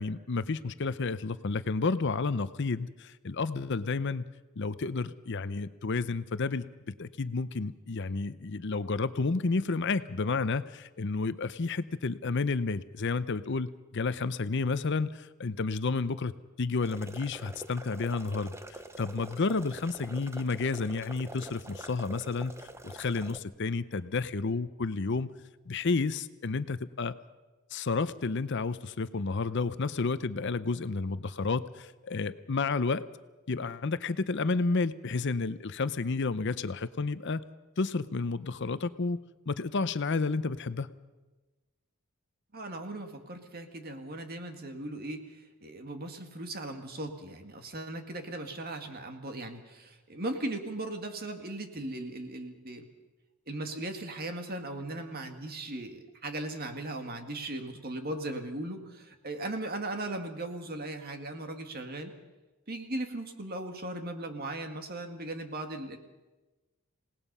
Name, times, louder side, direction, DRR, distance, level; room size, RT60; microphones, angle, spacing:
voice 1, 0.0-4.2 4.6-6.6 7.0-16.3 16.6-22.5 22.8-25.3 25.7-27.1 27.7-33.0 33.5-37.4 37.8-39.2 39.5-40.9, left 4 dB, 55° left, 14 dB, 0.6 m, -31 dB
sound 1, 16.8-23.4, right 1 dB, 10° right, 0.8 m, -46 dB
voice 2, 42.5-52.9 53.5-62.1 62.7-66.0, right 2 dB, 45° right, 5 dB, 2.0 m, -38 dB
27.0 x 18.5 x 5.5 m, 1.2 s
head